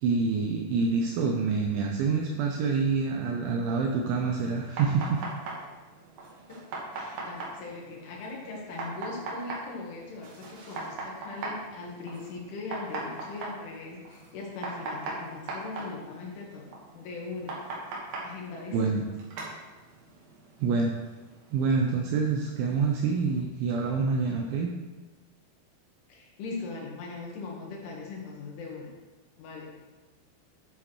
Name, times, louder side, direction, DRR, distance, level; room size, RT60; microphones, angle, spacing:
voice 1, 0.0-5.2 18.7-19.0 20.6-20.9 21.5-24.7, right 4 dB, 85° right, 2 dB, 2.6 m, -26 dB
sound 1, 4.4-23.4, right 2 dB, 60° right, 2.7 m, -41 dB
voice 2, 6.9-16.7 16.9-17.6 18.2-19.1 26.1-28.9 29.4-29.9, left 3 dB, 75° left, -2 dB, 3.8 m, -40 dB
10.0 x 8.0 x 3.1 m, 1.2 s
omnidirectional pair, 5.9 m